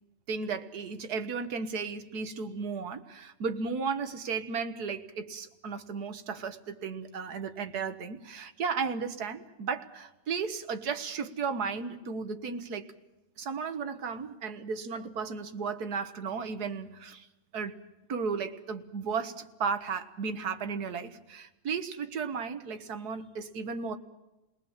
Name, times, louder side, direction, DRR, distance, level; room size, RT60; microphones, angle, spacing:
voice 1, 0.3-12.9 13.4-17.3 17.5-17.8 18.1-24.0, right 5 dB, 75° right, 9 dB, 1.8 m, -34 dB
29.5 x 19.0 x 7.3 m, 1.0 s
omnidirectional pair, 1.7 m